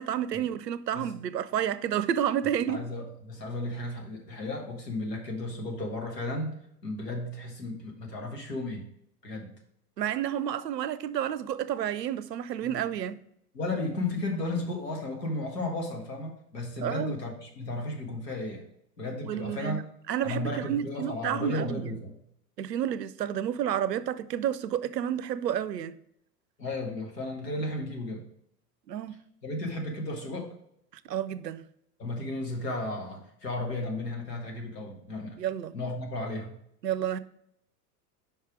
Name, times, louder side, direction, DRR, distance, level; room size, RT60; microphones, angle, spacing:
voice 1, 0.0-2.8 10.0-13.2 16.8-17.2 19.2-19.8 20.1-21.8 22.6-25.9 28.9-29.2 31.1-31.6 35.4-35.7 36.8-37.2, right 10 dB, 85° right, 0.6 m, -30 dB
voice 2, 2.7-6.6 6.8-8.9 9.2-9.5 12.6-12.8 13.5-18.7 19.0-19.8 20.2-22.1 26.6-28.2 29.4-30.5 32.0-35.4 35.7-36.6, left 2 dB, 80° left, 1.7 m, -34 dB
5.5 x 4.7 x 4.9 m
figure-of-eight pair, 85°, 48 cm